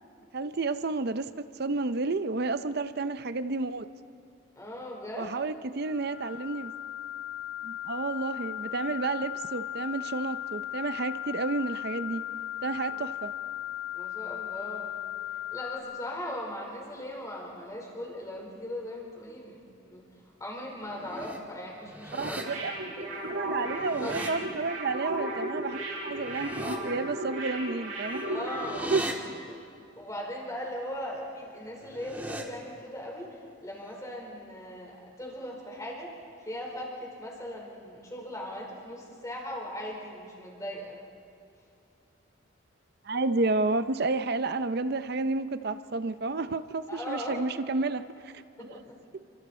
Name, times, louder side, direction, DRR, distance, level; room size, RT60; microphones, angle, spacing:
voice 1, 0.3-3.9 5.2-6.7 7.6-12.2 12.6-13.3 22.1-22.7 23.2-28.2 28.9-29.1 43.0-48.3 48.6-48.8 49.1-49.2, right 3 dB, 50° right, 11 dB, 0.6 m, -31 dB
voice 2, 4.6-5.4 12.9-13.1 13.9-14.9 15.5-20.0 20.4-22.4 23.0-23.1 24.0-24.3 28.3-28.9 29.5-29.6 30.0-36.2 36.4-41.0 46.9-47.4 48.6-49.0, left 1 dB, 15° left, -1 dB, 4.6 m, -39 dB
sound 1, 5.8-15.8, left 13 dB, 80° left, 5.7 m, -37 dB
sound 2, 20.8-21.4 21.8-22.4 23.6-24.3 26.1-26.8 28.0-29.1 31.7-32.4, right 1 dB, 10° right, 1.8 m, -39 dB
sound 3, 22.3-29.0 29.3-29.4, right 1 dB, 90° right, 7.3 m, -35 dB
29.0 x 26.0 x 4.4 m, 2.5 s
head